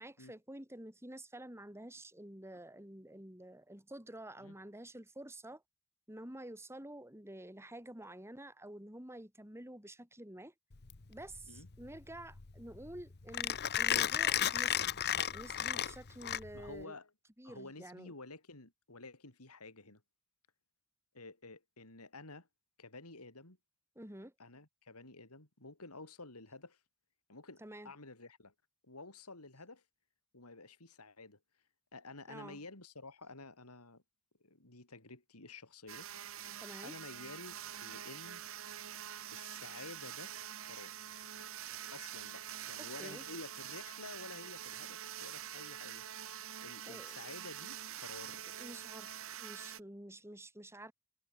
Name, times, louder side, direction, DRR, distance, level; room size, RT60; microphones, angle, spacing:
voice 1, 0.0-5.6 6.1-10.5 11.1-15.0 15.3-17.0 17.4-18.1 24.0-24.3 27.6-27.9 32.3-32.7 36.6-37.0 42.8-43.3 46.8-47.3 48.6-50.9, right 1 dB, 10° right, 5.5 m, -49 dB
Mechanisms, 10.7-16.8, left 10 dB, 50° left, 1.0 m, -34 dB
voice 2, 16.5-17.1 17.4-20.0 21.1-22.5 22.8-23.6 24.4-26.8 27.3-28.5 28.8-29.8 30.3-31.4 31.9-34.0 34.4-36.1 36.4-36.5 36.8-38.4 39.3-40.3 40.6-41.1 41.9-46.0 46.6-48.5, left 3 dB, 85° left, 4.4 m, -51 dB
sound 1, 35.9-49.8, right 10 dB, 65° right, 2.4 m, -46 dB
head